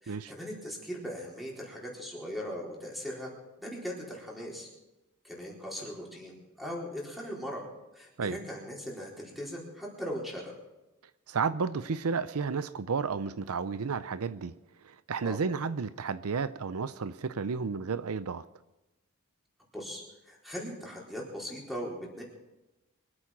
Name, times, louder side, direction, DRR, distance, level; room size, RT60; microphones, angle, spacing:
voice 1, 0.0-3.3 3.6-4.7 5.2-7.7 7.9-10.5 15.2-15.4 19.7-22.2, equal, ahead, 4.2 m, -39 dB
voice 2, 11.3-14.5 14.8-18.5, right 5 dB, 85° right, 0.6 m, -32 dB
24.0 x 8.8 x 6.0 m
head